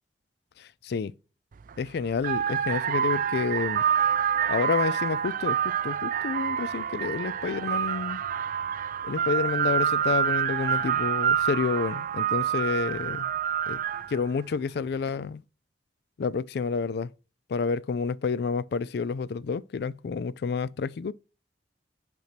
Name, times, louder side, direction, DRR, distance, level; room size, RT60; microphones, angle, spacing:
voice 1, 0.6-1.1 1.8-3.8 4.5-8.2 9.0-13.2 13.7-13.8 14.1-15.4 16.2-17.1 17.5-21.1, left 5 dB, 65° left, 0.4 m, -29 dB
sound 1, 1.5-1.7 2.2-14.3, right 8 dB, 50° right, 0.3 m, -27 dB
5.6 x 4.4 x 5.9 m
head